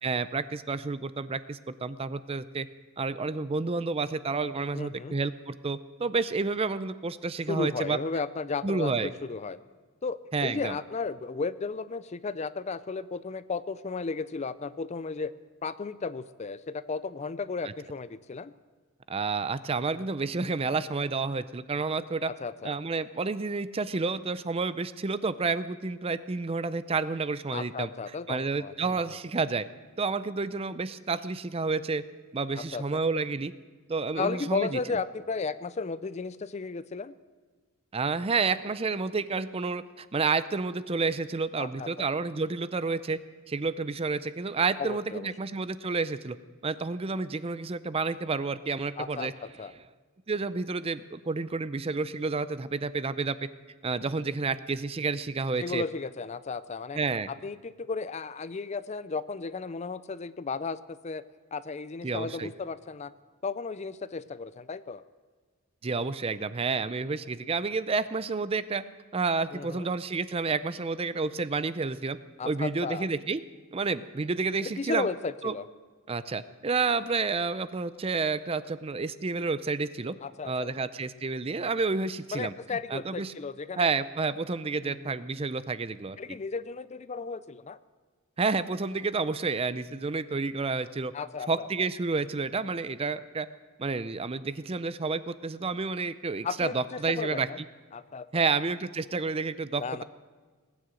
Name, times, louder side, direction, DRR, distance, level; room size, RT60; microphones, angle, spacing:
voice 1, 0.0-2.7 3.0-8.0 8.6-9.1 10.3-10.7 17.6-17.7 19.1-22.3 22.6-27.9 28.3-29.7 30.0-32.0 32.3-33.5 33.9-34.8 37.9-43.2 43.5-46.4 46.6-49.3 50.3-53.5 53.8-55.8 56.9-57.3 62.0-62.5 65.8-68.8 69.1-72.2 72.4-73.4 73.7-75.1 75.4-75.5 76.1-80.1 80.4-82.5 82.9-83.3 83.8-86.2 88.4-91.1 91.5-93.5 93.8-97.5 98.3-100.0, right 4 dB, 25° right, 15 dB, 0.5 m, -30 dB
voice 2, 4.7-5.2 7.5-9.6 10.0-15.3 15.6-18.5 22.3-22.7 27.5-29.0 32.6-33.0 34.2-37.1 41.6-42.1 44.8-45.3 49.0-49.7 55.6-57.0 57.3-61.2 61.5-63.1 63.4-65.0 69.5-69.9 72.4-73.1 74.6-75.7 80.2-80.9 82.3-83.9 84.8-85.2 86.2-87.8 91.1-91.7 96.4-97.6 97.9-98.5 99.8-100.0, left 4 dB, 30° left, 15 dB, 0.4 m, -34 dB
19.5 x 9.6 x 7.6 m, 1.5 s
head